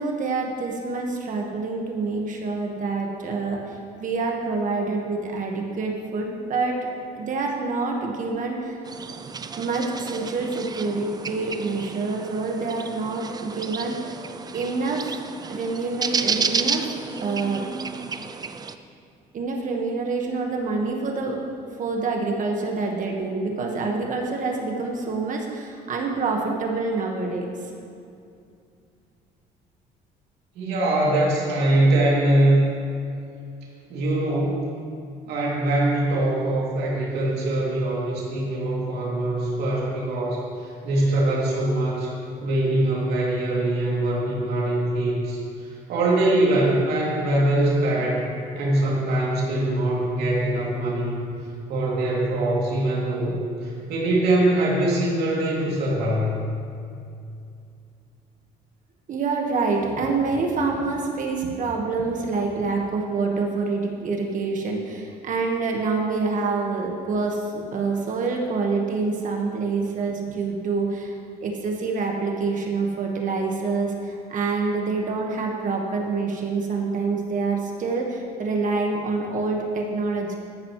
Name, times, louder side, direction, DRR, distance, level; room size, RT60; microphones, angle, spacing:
voice 1, 0.0-8.8 9.6-14.1 14.5-15.1 15.4-16.9 17.2-17.6 19.3-21.4 21.8-27.5 59.1-67.4 67.7-71.1 71.4-80.4, right 3 dB, 50° right, 1 dB, 1.5 m, -26 dB
sound 1, 8.9-18.8, right 5 dB, 25° right, 0.5 m, -31 dB
voice 2, 30.6-32.6 33.9-34.6 35.3-40.4 40.8-42.1 42.4-45.4 45.9-48.3 48.5-51.2 51.7-56.3, right 1 dB, 75° right, -5 dB, 2.8 m, -22 dB
13.5 x 11.5 x 3.2 m, 2.5 s
cardioid pair, 110°, 17 cm